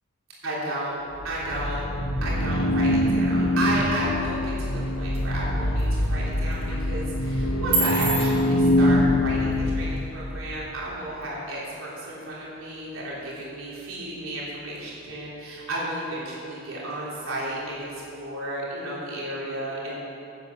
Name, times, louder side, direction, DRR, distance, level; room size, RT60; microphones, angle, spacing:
voice 1, 0.4-1.0 1.2-1.9 2.2-20.0, right 1 dB, 75° right, -6 dB, 3.5 m, -33 dB
sound 1, 1.2-10.5, left 1 dB, 80° left, 1.3 m, -24 dB
sound 2, 4.3-18.3, right 3 dB, 30° right, 3.5 m, -38 dB
11.0 x 9.4 x 7.4 m, 2.6 s
head